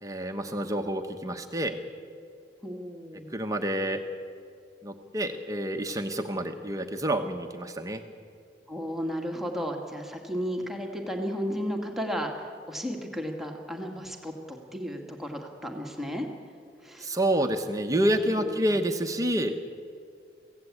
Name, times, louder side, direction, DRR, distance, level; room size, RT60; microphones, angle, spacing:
voice 1, 0.0-1.7 3.3-4.0 4.8-8.0 17.0-19.5, right 1 dB, 20° right, 5 dB, 1.0 m, -28 dB
voice 2, 2.6-3.3 8.7-16.3 16.8-17.1 18.1-18.7, equal, ahead, 1 dB, 2.1 m, -34 dB
24.0 x 16.5 x 8.5 m, 2.3 s
head